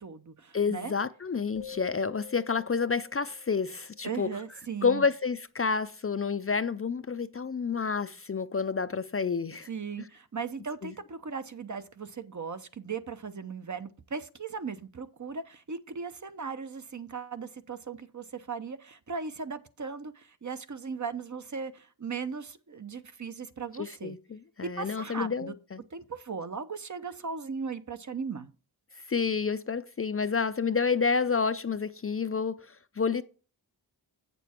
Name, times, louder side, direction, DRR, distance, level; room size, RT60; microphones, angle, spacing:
voice 1, 0.0-0.9 4.0-5.1 9.7-24.2 24.8-25.5 25.9-28.5, right 5 dB, 45° right, 0.8 m, -38 dB
voice 2, 0.5-4.3 4.8-9.7 10.8-10.9 23.8-25.8 29.1-33.2, left 5 dB, 35° left, 0.5 m, -29 dB
sound 1, 1.6-4.2, left 10 dB, 80° left, 0.7 m, -47 dB
8.2 x 6.9 x 4.4 m
wide cardioid pair, 90°, 41 cm